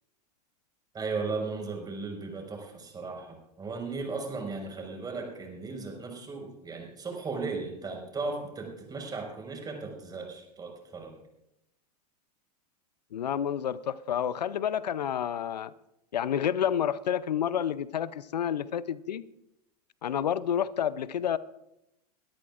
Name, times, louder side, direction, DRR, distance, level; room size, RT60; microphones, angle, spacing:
voice 1, 0.9-11.1, right 4 dB, 20° right, 5.0 m, -36 dB
voice 2, 13.1-15.7 16.1-19.3 20.0-21.4, left 9 dB, 85° left, 0.6 m, -29 dB
23.5 x 13.0 x 2.5 m
hypercardioid pair, 105°, 21 cm